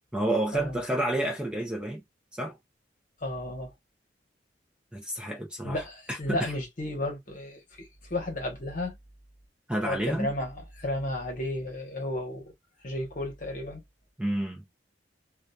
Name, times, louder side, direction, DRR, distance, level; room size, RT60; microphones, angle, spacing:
voice 1, 0.1-2.0 2.3-2.6 4.9-6.5 9.7-10.3 14.2-14.6, right 1 dB, 5° right, 0.4 m, -30 dB
voice 2, 3.2-3.7 5.6-9.0 9.8-12.5 12.8-13.8, left 1 dB, 45° left, 1.0 m, -33 dB
2.6 x 2.3 x 2.2 m
head